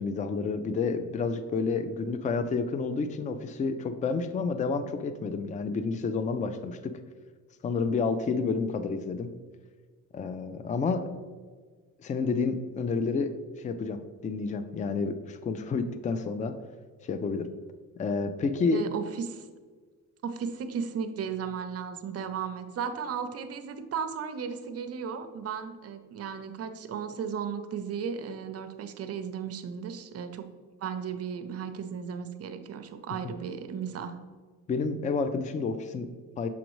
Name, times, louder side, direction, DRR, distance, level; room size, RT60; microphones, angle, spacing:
voice 1, 0.0-6.9 7.6-9.3 10.1-11.1 12.0-13.3 13.6-16.5 17.0-17.5 18.0-18.8 34.7-36.5, left 4 dB, 25° left, 10 dB, 0.3 m, -30 dB
voice 2, 18.7-19.5 20.2-30.5 30.8-34.2, right 7 dB, 45° right, 9 dB, 0.6 m, -35 dB
7.0 x 5.1 x 3.0 m, 1.5 s
cardioid pair, 120°, 34 cm